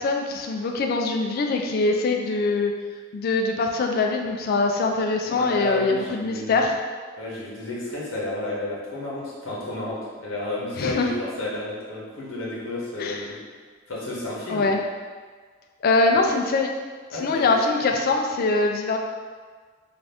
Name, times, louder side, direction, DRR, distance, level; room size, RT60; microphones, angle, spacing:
voice 1, 0.0-2.7 3.1-6.8 10.8-11.1 13.0-13.3 14.5-14.8 15.8-16.7 17.2-19.0, left 3 dB, 50° left, 3 dB, 0.3 m, -23 dB
voice 2, 5.3-6.5 7.2-13.4 13.9-14.7 17.1-17.5, left 2 dB, 80° left, -6 dB, 0.8 m, -31 dB
2.6 x 2.4 x 3.3 m, 1.5 s
head